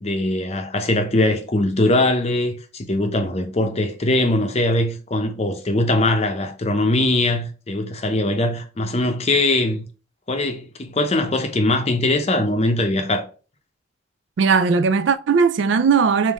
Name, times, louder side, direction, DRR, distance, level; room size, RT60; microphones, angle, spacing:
voice 1, 0.0-9.9 10.3-13.2, left 2 dB, 30° left, 0.6 m, -21 dB
voice 2, 14.4-16.3, right 5 dB, 65° right, 0.4 m, -18 dB
3.6 x 2.6 x 4.7 m
head